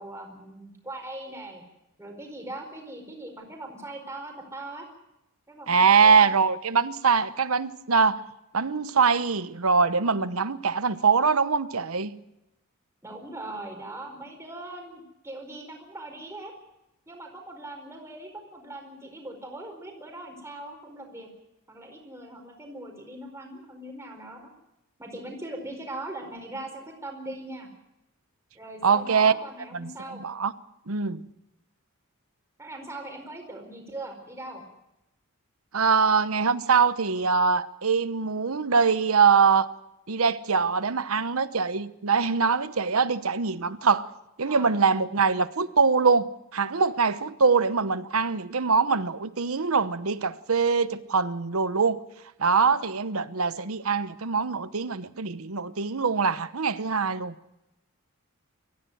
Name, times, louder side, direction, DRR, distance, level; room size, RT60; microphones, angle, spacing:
voice 1, 0.0-1.6 2.0-4.9 5.5-6.2 13.0-16.5 17.1-21.3 21.7-24.4 25.0-27.7 28.5-30.2 32.6-34.6 44.4-44.7, right 1 dB, 15° right, 4.7 m, -40 dB
voice 2, 5.7-8.2 8.5-12.2 28.8-29.3 29.7-30.5 30.9-31.2 35.7-39.7 40.1-44.1 44.4-52.0 52.4-57.3, right 5 dB, 80° right, 1.0 m, -23 dB
23.0 x 15.0 x 9.3 m
head